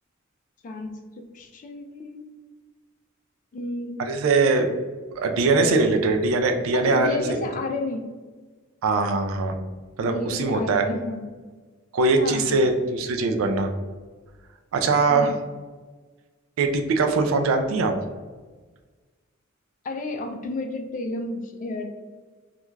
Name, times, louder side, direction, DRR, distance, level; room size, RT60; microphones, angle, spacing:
voice 1, 0.6-2.3 3.5-4.0 5.4-5.9 6.7-8.1 10.0-11.3 12.2-12.7 15.1-15.4 19.8-21.9, left 2 dB, 40° left, 5 dB, 0.3 m, -32 dB
voice 2, 4.1-4.7 5.2-7.5 8.8-9.5 10.0-10.8 11.9-13.7 14.7-15.3 16.6-17.9, right 3 dB, 75° right, 5 dB, 0.4 m, -21 dB
2.4 x 2.2 x 3.1 m, 1.4 s
head